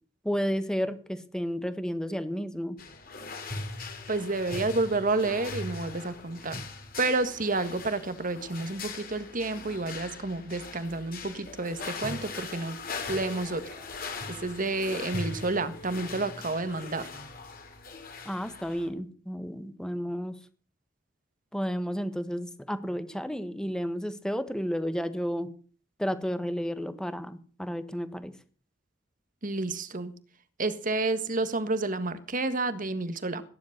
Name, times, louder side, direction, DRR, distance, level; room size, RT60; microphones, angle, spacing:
voice 1, 0.2-2.8 18.2-20.3 21.5-25.5 26.0-28.3, equal, 5° left, 11 dB, 1.4 m, -32 dB
sound 1, 2.8-18.9, left 3 dB, 50° left, 3.1 m, -40 dB
voice 2, 4.1-6.6 7.0-12.8 13.1-13.6 14.4-17.1 29.4-30.1 30.6-33.4, right 3 dB, 45° right, 11 dB, 1.6 m, -30 dB
16.5 x 10.5 x 6.6 m, 0.42 s
head